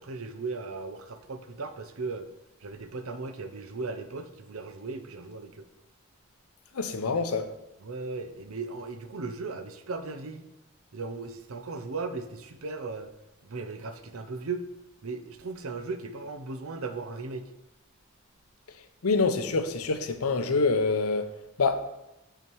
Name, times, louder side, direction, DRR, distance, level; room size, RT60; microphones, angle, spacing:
voice 1, 0.0-2.3 2.6-5.6 7.8-10.5 10.9-13.1 13.4-14.7 15.0-17.5, right 3 dB, 75° right, 9 dB, 0.7 m, -37 dB
voice 2, 6.7-7.5 19.0-21.3 21.6-21.8, left 4 dB, 85° left, 9 dB, 0.7 m, -26 dB
7.0 x 5.7 x 4.6 m, 0.93 s
head